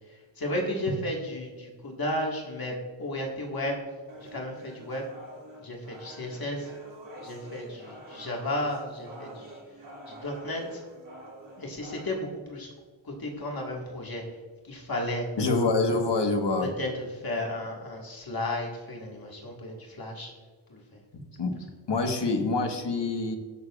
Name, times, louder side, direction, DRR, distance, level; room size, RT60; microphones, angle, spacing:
voice 1, 0.1-3.8 4.2-5.1 5.6-6.7 7.2-9.6 10.1-10.8 11.6-12.7 13.0-14.2 14.6-15.3 16.8-20.3 20.7-21.0, left 1 dB, 50° left, -1 dB, 1.8 m, -34 dB
sound 1, 4.1-12.1, right 1 dB, 85° right, 2.6 m, -47 dB
voice 2, 15.4-16.7 21.4-21.5 21.9-23.4, left 3 dB, 70° left, 4 dB, 1.3 m, -26 dB
19.0 x 6.8 x 2.4 m, 1.5 s
wide cardioid pair, 85°, 44 cm